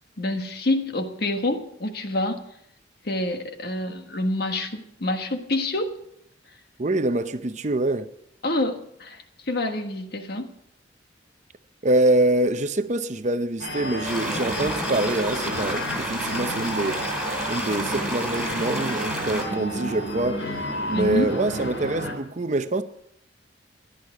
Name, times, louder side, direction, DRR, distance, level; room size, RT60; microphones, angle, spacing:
voice 1, 0.2-2.4 3.0-6.0 8.4-10.5 20.9-21.3, left 1 dB, 55° left, 1.5 m, -27 dB
voice 2, 6.8-8.1 11.8-17.0 17.5-20.4 20.9-22.8, right 2 dB, 40° right, 0.7 m, -25 dB
sound 1, 13.6-22.1, equal, 85° left, 3.9 m, -32 dB
sound 2, 14.0-19.4, right 1 dB, ahead, 3.6 m, -30 dB
17.0 x 11.5 x 4.8 m
head